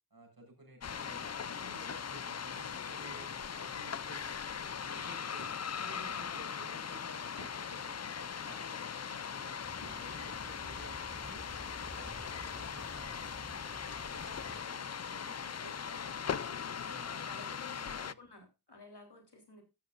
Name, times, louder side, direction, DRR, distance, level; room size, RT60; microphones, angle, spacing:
voice 1, 0.1-5.5 5.9-11.4 11.7-18.1, right 2 dB, 65° right, 2 dB, 7.2 m, -55 dB
sound 1, 0.8-18.1, left 7 dB, 45° left, 0.5 m, -40 dB
sound 2, 5.2-10.1 10.7-11.3, left 1 dB, 75° left, 7.0 m, -59 dB
voice 2, 5.8-6.3 17.0-19.6, left 2 dB, 90° left, 3 dB, 3.7 m, -53 dB
sound 3, 9.6-14.6, equal, ahead, 4.5 m, -51 dB
13.5 x 13.0 x 2.5 m, 0.26 s
wide cardioid pair, 55°, 39 cm